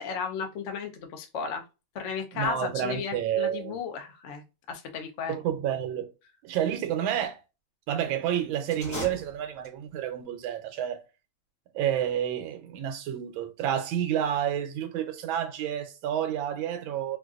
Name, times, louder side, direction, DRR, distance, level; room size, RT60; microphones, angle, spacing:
voice 1, 0.0-1.6 1.9-5.4, left 6 dB, 65° left, 0.7 m, -34 dB
voice 2, 2.3-3.8 5.3-6.1 6.4-7.4 7.9-11.0 11.7-17.2, right 10 dB, 85° right, 1.4 m, -29 dB
sound 1, 8.6-10.0, left 2 dB, 20° left, 0.5 m, -39 dB
3.9 x 2.5 x 2.4 m
omnidirectional pair, 2.2 m